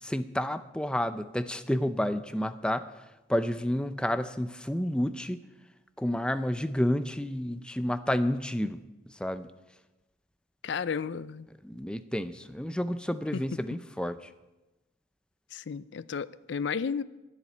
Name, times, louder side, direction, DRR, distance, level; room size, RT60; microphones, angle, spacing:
voice 1, 0.0-5.4 6.0-8.8 9.1-9.5 11.6-14.3, left 1 dB, 5° left, 0.5 m, -30 dB
voice 2, 10.6-11.5 13.3-13.4 15.5-17.0, left 6 dB, 75° left, 0.4 m, -33 dB
12.5 x 7.2 x 9.8 m
head